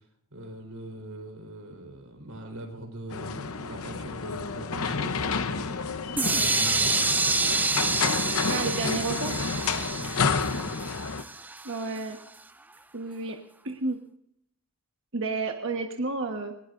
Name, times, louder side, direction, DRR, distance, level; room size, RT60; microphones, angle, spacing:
voice 1, 0.3-5.9 6.2-7.2 9.9-10.7, right 1 dB, 75° right, 3 dB, 4.3 m, -41 dB
sound 1, 3.1-11.2, left 5 dB, 70° left, 0.8 m, -30 dB
sound 2, 6.2-12.0, right 3 dB, 10° right, 0.4 m, -28 dB
voice 2, 8.5-9.4 11.6-12.2 12.9-13.4 13.6-14.0 15.1-16.5, right 3 dB, 55° right, 2 dB, 1.4 m, -31 dB
19.5 x 17.0 x 2.6 m, 0.73 s
head